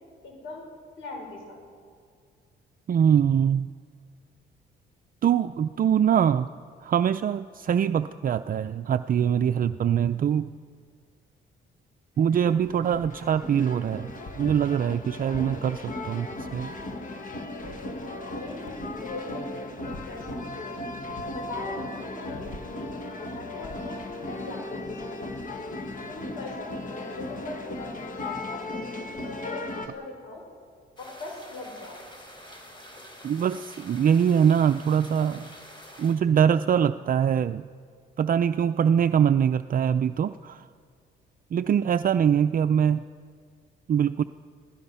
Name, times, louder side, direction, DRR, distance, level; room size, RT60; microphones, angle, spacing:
voice 1, 0.2-0.6 1.0-1.6 18.3-20.8 21.2-25.4 26.1-30.4 31.0-32.0, left 2 dB, 85° left, 1 dB, 6.4 m, -40 dB
voice 2, 2.9-3.7 5.2-6.5 6.8-10.5 12.2-16.7 33.2-35.5 36.0-37.7 38.2-40.7 41.5-43.0 43.9-44.2, right 8 dB, 45° right, 10 dB, 0.5 m, -23 dB
sound 1, 12.2-29.9, left 2 dB, 40° left, 2.0 m, -36 dB
sound 2, 31.0-36.1, equal, 25° left, 4.4 m, -47 dB
27.0 x 17.0 x 5.7 m, 2.1 s
cardioid pair, 90°, 20 cm